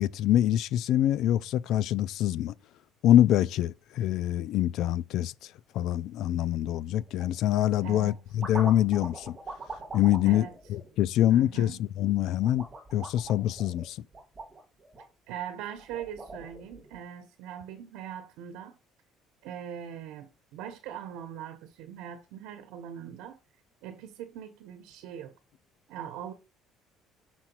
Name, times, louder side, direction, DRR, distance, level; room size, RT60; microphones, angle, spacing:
voice 1, 0.0-2.5 3.0-5.3 5.7-9.4 9.9-12.6 12.9-14.0, left 12 dB, 60° left, 0.3 m, -25 dB
sound 1, 7.0-7.3 8.0-11.6 12.4-15.1 15.7-17.0, right 3 dB, 20° right, 2.8 m, -43 dB
voice 2, 7.8-8.2 10.2-10.6 11.3-11.8 15.3-18.8 19.4-23.4 23.8-25.3 25.9-26.3, right 9 dB, 85° right, 1.0 m, -41 dB
6.0 x 3.9 x 6.0 m
cardioid pair, 160°, 0 cm